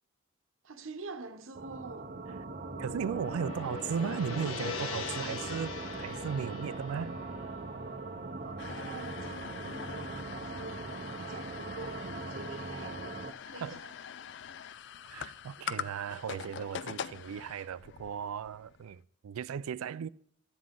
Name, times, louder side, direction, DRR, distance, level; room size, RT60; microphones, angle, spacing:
voice 1, 0.6-2.1 8.4-10.9 11.3-13.1 13.5-14.0, right 3 dB, 70° right, 0.9 m, -46 dB
sound 1, 1.5-13.3, right 3 dB, 40° right, 0.6 m, -41 dB
Gong, 2.1-10.4, left 4 dB, 90° left, 1.3 m, -42 dB
voice 2, 2.8-7.2 13.6-13.8 15.1-20.1, right 7 dB, 85° right, 0.3 m, -36 dB
sound 2, 8.6-18.9, left 8 dB, 55° left, 0.3 m, -44 dB
12.5 x 9.5 x 3.8 m
head